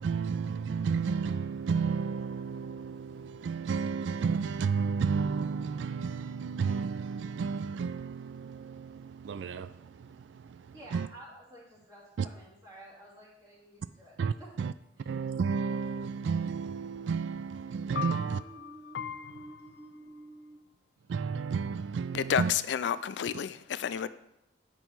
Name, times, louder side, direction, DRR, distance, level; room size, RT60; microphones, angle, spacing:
voice 1, 0.0-11.1 12.2-12.3 14.2-14.7 15.0-18.4 21.1-22.5, right 5 dB, 90° right, 0.3 m, -32 dB
voice 2, 10.7-14.5 15.1-15.2 18.1-20.6, right 1 dB, 20° right, 2.9 m, -51 dB
voice 3, 18.6-19.3 22.1-24.1, left 8 dB, 75° left, 0.4 m, -31 dB
9.1 x 5.4 x 4.5 m
head